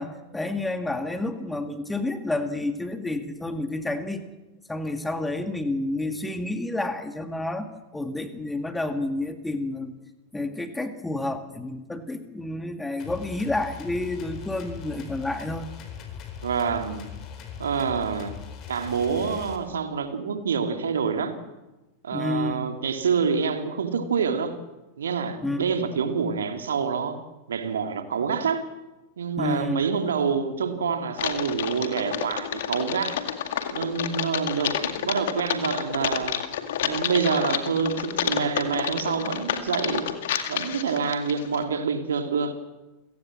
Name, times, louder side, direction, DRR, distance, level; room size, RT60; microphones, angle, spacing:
voice 1, 0.0-4.2 4.7-9.9 10.3-15.7 22.1-22.7 25.4-25.7 29.4-29.8, left 2 dB, 5° left, 8 dB, 2.0 m, -30 dB
sound 1, 13.0-19.6, left 8 dB, 35° left, 4.5 m, -40 dB
voice 2, 16.4-17.1 17.6-18.3 18.7-21.3 22.0-24.6 25.0-27.2 27.5-28.6 29.2-33.2 33.7-36.4 36.8-40.1 40.5-42.5, right 6 dB, 65° right, 6 dB, 2.4 m, -27 dB
Typing, 31.1-41.6, left 9 dB, 55° left, 2.1 m, -30 dB
29.0 x 16.5 x 7.7 m, 1.1 s
figure-of-eight pair, 90°, 0 cm